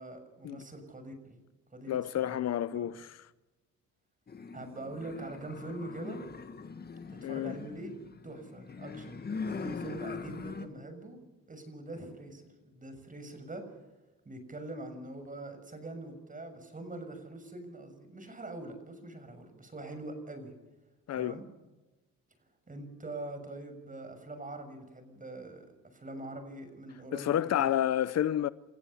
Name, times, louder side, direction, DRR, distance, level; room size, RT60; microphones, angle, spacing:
voice 1, 0.0-2.4 2.7-2.9 4.5-6.2 7.1-7.9 8.2-11.2 11.5-13.8 14.2-20.5 21.1-21.4 22.7-27.8, right 2 dB, 25° right, 6.6 m, -43 dB
voice 2, 1.9-3.2 7.2-7.6 21.1-21.4 27.1-28.5, left 11 dB, 60° left, 0.7 m, -30 dB
sound 1, 4.3-10.7, left 5 dB, 30° left, 1.8 m, -42 dB
29.5 x 15.0 x 7.1 m
cardioid pair, 90°, 30 cm